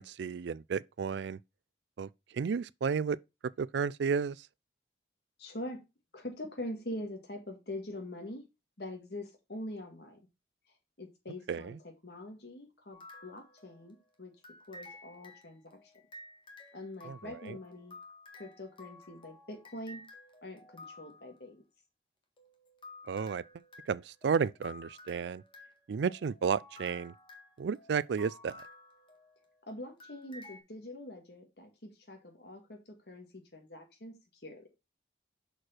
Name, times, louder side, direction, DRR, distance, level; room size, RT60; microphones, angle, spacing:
voice 1, 0.0-1.4 2.0-3.2 3.6-4.5 11.5-11.7 17.1-17.6 23.1-23.4 23.9-25.4 25.9-27.1 27.6-28.6, right 6 dB, 75° right, 0.4 m, -32 dB
voice 2, 5.4-5.8 6.1-8.4 8.8-10.2 11.0-14.3 14.7-15.9 16.7-17.9 18.3-20.0 20.4-21.6 29.7-34.6, left 1 dB, 65° left, 1.8 m, -44 dB
sound 1, 12.9-14.0 14.4-21.4 22.4-29.6 30.0-30.6, left 2 dB, 30° left, 1.5 m, -53 dB
6.3 x 4.8 x 4.3 m
head